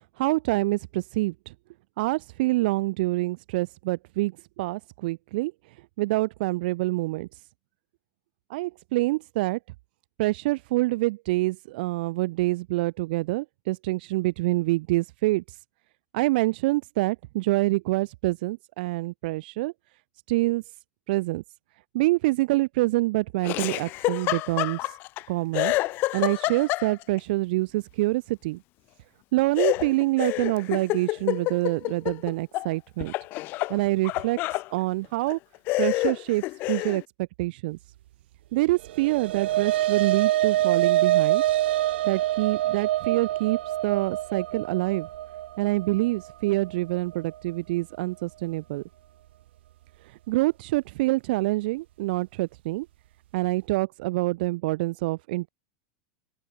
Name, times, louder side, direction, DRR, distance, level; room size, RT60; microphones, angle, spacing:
voice 1, 0.2-1.5 2.0-4.3 4.6-5.5 6.0-7.3 8.5-9.6 10.2-15.6 16.1-19.7 20.3-20.6 21.1-21.4 21.9-25.0 25.3-25.7 26.1-28.6 29.3-33.1 33.7-35.4 35.8-37.8 38.5-41.4 42.0-43.6 43.8-45.1 45.6-48.8 50.0-52.9 53.3-55.5, right 20 dB, 60° right, 1.3 m, -26 dB
Laughter, 23.4-25.2 25.5-27.2 29.6-32.7 33.0-34.7 35.3-35.4 35.7-37.0, left 20 dB, 35° left, 0.5 m, -28 dB
sound 1, 38.8-47.3, right 14 dB, 75° right, 0.9 m, -26 dB
open air
supercardioid pair, 160°, 6 cm